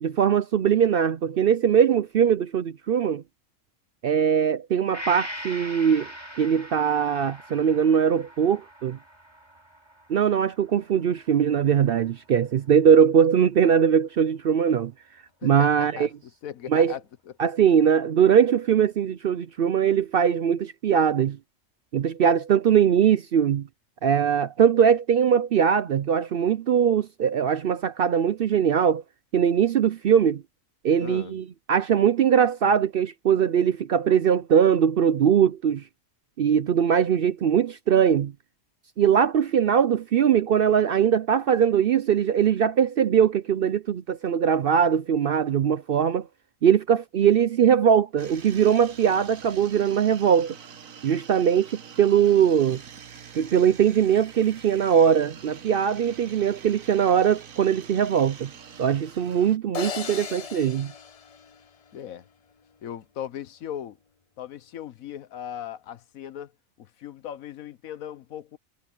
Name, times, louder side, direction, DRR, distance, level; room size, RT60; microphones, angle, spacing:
voice 1, 0.0-3.2 4.0-6.1 6.4-9.0 10.1-14.9 15.4-16.1 16.7-16.9 17.4-21.4 21.9-23.7 24.0-29.0 29.3-30.4 30.8-35.8 36.4-38.3 39.0-46.3 46.6-50.5 51.0-52.8 53.3-58.5 58.8-60.9, right 8 dB, 60° right, 0.6 m, -21 dB
Gong, 4.9-12.6 13.0-13.1, equal, 20° right, 7.0 m, -42 dB
voice 2, 15.4-16.1 16.4-17.0 17.4-17.5 31.0-31.4 61.9-62.2 62.8-64.0 64.4-66.5 66.8-68.6, left 10 dB, 85° left, 1.3 m, -37 dB
sound 1, 48.2-59.6, right 7 dB, 75° right, 1.7 m, -45 dB
sound 2, 59.7-62.1, left 6 dB, 55° left, 0.4 m, -37 dB
omnidirectional pair, 1.4 m